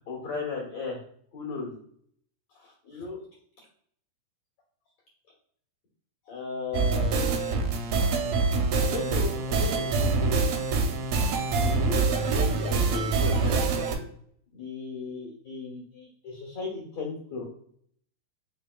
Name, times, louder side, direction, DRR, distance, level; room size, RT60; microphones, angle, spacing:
voice 1, 0.1-1.0 1.3-1.8 2.5-3.2 6.3-7.6 8.8-10.5 11.5-13.6 14.5-17.4, left 4 dB, 60° left, -4 dB, 1.8 m, -36 dB
sound 1, 6.7-14.0, right 4 dB, 80° right, 2.2 m, -25 dB
5.8 x 3.5 x 2.2 m, 0.64 s
omnidirectional pair, 4.6 m